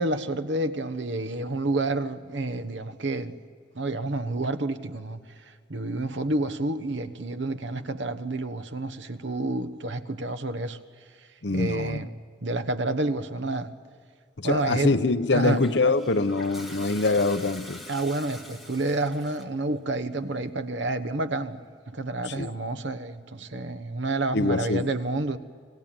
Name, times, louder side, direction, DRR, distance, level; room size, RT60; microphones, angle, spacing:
voice 1, 0.0-3.3 3.7-10.8 11.5-12.1 12.4-13.7 14.4-14.9 15.3-15.6 17.9-21.6 21.9-25.4, right 2 dB, 70° right, 1.2 m, -29 dB
voice 2, 11.4-12.0 14.4-17.8 22.3-22.5 24.3-24.9, left 3 dB, 65° left, 0.9 m, -24 dB
Toilet flush, 15.3-19.6, left 1 dB, ahead, 2.0 m, -44 dB
26.5 x 17.5 x 9.0 m
head